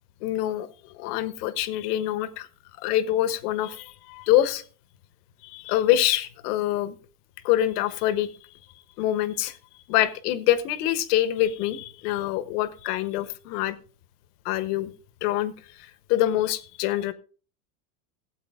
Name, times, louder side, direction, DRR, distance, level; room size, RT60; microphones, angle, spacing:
voice 1, 0.2-0.7 0.9-2.5 2.8-4.6 5.4-6.9 7.4-8.3 9.0-9.6 9.9-13.8 14.4-14.9 15.2-15.5 16.1-17.1, left 13 dB, 70° left, 13 dB, 1.3 m, -25 dB
17.0 x 8.2 x 3.6 m, 0.40 s
supercardioid pair, 140°, 48 cm